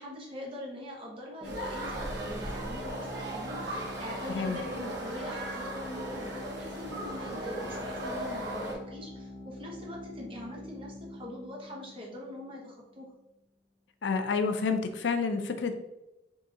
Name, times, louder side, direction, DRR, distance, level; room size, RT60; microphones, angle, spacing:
voice 1, 0.0-13.1, left 1 dB, 30° right, -3 dB, 1.1 m, -42 dB
sound 1, 1.4-12.8, left 1 dB, 5° left, 1.2 m, -45 dB
sound 2, 1.4-8.7, right 1 dB, 70° right, 1.0 m, -37 dB
voice 2, 4.3-4.6 14.0-15.7, left 4 dB, 80° left, 7 dB, 0.5 m, -29 dB
3.7 x 2.7 x 4.0 m, 0.93 s
head